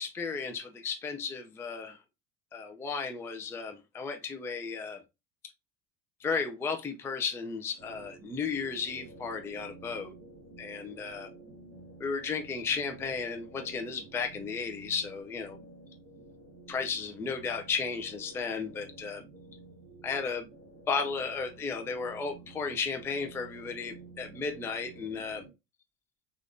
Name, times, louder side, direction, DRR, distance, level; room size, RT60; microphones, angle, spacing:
voice 1, 0.0-2.0 2.5-5.0 6.2-10.1 10.6-11.3 12.0-15.6 16.7-19.2 20.0-20.4 20.9-25.5, left 5 dB, 10° left, 0.3 m, -34 dB
sound 1, 7.8-25.5, right 2 dB, 40° right, 1.5 m, -51 dB
3.3 x 2.4 x 2.5 m
supercardioid pair, 115°, 34 cm